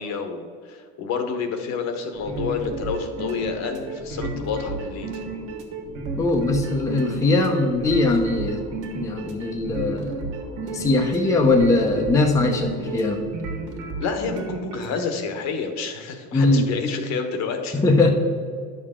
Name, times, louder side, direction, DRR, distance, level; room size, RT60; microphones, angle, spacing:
voice 1, 0.0-5.2 14.0-17.8, left 5 dB, 55° left, 6 dB, 1.2 m, -29 dB
sound 1, 2.1-15.0, right 3 dB, 70° right, 1.7 m, -33 dB
voice 2, 6.2-8.6 8.9-10.3 10.6-13.3 16.3-16.7 17.7-18.1, left 2 dB, 10° left, 2 dB, 0.7 m, -21 dB
10.5 x 6.7 x 3.7 m, 2.1 s
cardioid pair, 145°, 32 cm